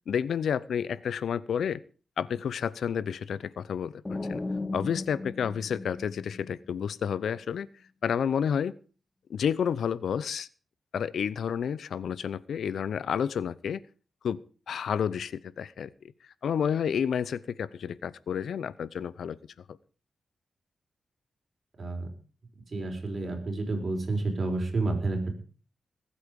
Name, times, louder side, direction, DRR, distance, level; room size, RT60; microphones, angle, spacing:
voice 1, 0.1-1.8 2.2-4.4 4.7-7.7 8.0-8.7 9.3-10.5 10.9-13.8 14.2-15.9 16.4-19.4, left 7 dB, 80° left, 19 dB, 0.7 m, -30 dB
sound 1, 4.0-6.8, left 2 dB, 20° left, 1.6 m, -36 dB
voice 2, 21.8-22.1 22.7-25.4, right 2 dB, 45° right, 3 dB, 5.3 m, -30 dB
20.0 x 8.6 x 5.2 m, 0.39 s
cardioid pair, 85°, 0 cm